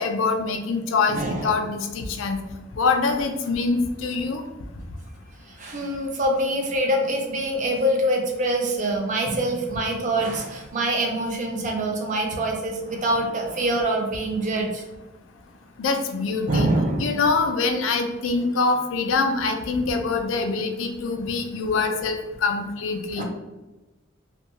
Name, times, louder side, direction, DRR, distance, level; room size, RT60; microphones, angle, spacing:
voice 1, 0.0-2.4 2.7-4.4 15.8-16.7 17.0-23.2, left 4 dB, 75° left, 5 dB, 0.4 m, -24 dB
voice 2, 1.1-1.6 5.6-14.8 16.5-17.2 23.2-23.3, right 1 dB, 40° right, 1 dB, 0.5 m, -25 dB
2.6 x 2.2 x 2.8 m, 1.1 s
head